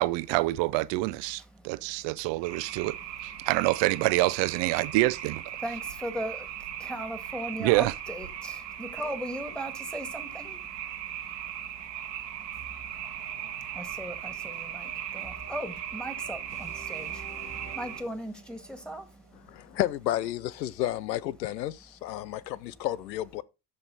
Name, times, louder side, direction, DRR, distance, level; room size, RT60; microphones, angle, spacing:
voice 1, 0.0-3.0 3.5-5.4 7.6-7.9, right 20 dB, 60° right, 0.7 m, -26 dB
voice 2, 1.4-3.1 3.4-3.5 5.6-19.8, equal, ahead, 2.0 m, -40 dB
sound 1, 2.4-18.0, right 10 dB, 80° right, 1.5 m, -38 dB
sound 2, 12.5-20.4, right 2 dB, 65° left, 5.8 m, -51 dB
voice 3, 19.5-23.4, left 13 dB, 85° left, 0.6 m, -31 dB
13.0 x 5.5 x 4.0 m
figure-of-eight pair, 50°, 49 cm